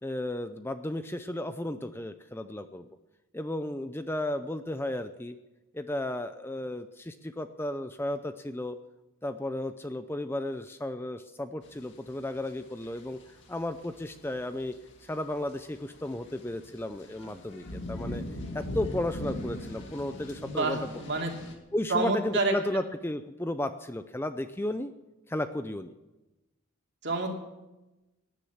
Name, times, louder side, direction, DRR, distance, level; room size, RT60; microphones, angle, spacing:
voice 1, 0.0-2.9 3.3-5.4 5.7-8.8 9.2-14.7 15.0-18.2 18.5-20.8 21.7-24.9 25.3-25.9, left 1 dB, 10° left, 10 dB, 0.5 m, -34 dB
sound 1, 11.6-21.5, left 1 dB, 55° left, 2.4 m, -41 dB
voice 2, 20.4-21.3 21.9-22.5 27.0-27.3, right 3 dB, 50° right, 2 dB, 2.7 m, -28 dB
18.0 x 10.0 x 7.1 m, 1.0 s
head